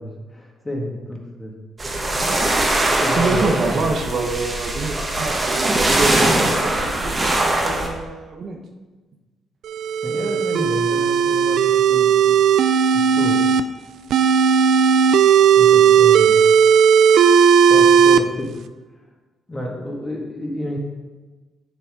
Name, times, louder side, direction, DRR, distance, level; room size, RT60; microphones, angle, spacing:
voice 1, 0.0-1.5 3.0-3.9 9.9-12.4 12.9-13.5 15.5-16.4 17.6-18.6 19.5-20.8, equal, 20° left, -1 dB, 2.0 m, -29 dB
sound 1, 1.8-7.9, right 1 dB, 25° right, 1.7 m, -21 dB
voice 2, 3.2-8.6 15.3-15.5, right 3 dB, 60° right, 2 dB, 1.1 m, -26 dB
sound 2, 9.7-13.6 14.1-18.2, right 7 dB, 75° right, 0.4 m, -15 dB
7.3 x 7.0 x 5.1 m, 1.3 s
cardioid pair, 90°, 0 cm